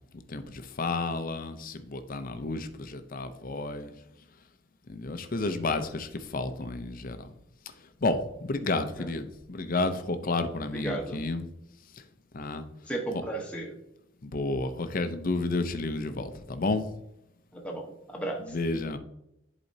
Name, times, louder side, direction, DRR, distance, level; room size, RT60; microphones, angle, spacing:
voice 1, 0.3-3.9 4.9-7.3 7.8-11.5 11.9-12.0 12.3-12.6 13.1-13.2 14.2-16.9 18.4-19.0, left 3 dB, 45° left, 9 dB, 0.6 m, -31 dB
voice 2, 10.7-11.2 12.9-13.7 17.5-18.4, right 2 dB, 5° left, 0 dB, 1.0 m, -34 dB
11.0 x 4.2 x 2.7 m, 0.83 s
head